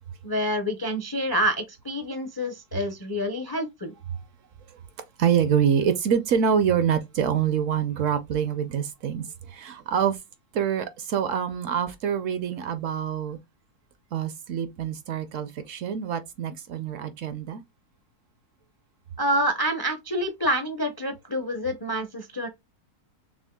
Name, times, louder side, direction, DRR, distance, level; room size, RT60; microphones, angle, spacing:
voice 1, 0.2-3.9 19.2-22.5, equal, 30° left, 0.4 m, -27 dB
voice 2, 5.2-10.2 10.5-13.4 14.1-17.6, right 8 dB, 65° right, 0.9 m, -26 dB
6.1 x 2.1 x 2.2 m
omnidirectional pair, 1.6 m